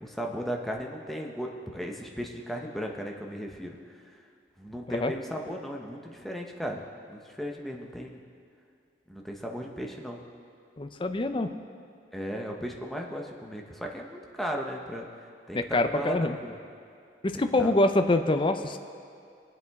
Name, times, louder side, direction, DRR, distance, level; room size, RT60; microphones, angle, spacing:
voice 1, 0.0-3.8 4.6-8.2 9.1-10.2 12.1-15.1 15.5-16.6 17.3-17.7, equal, ahead, 0 dB, 0.9 m, -36 dB
voice 2, 10.8-11.5 15.5-16.4 17.2-18.8, left 2 dB, 30° left, 8 dB, 0.5 m, -25 dB
22.5 x 7.8 x 3.6 m, 2.4 s
head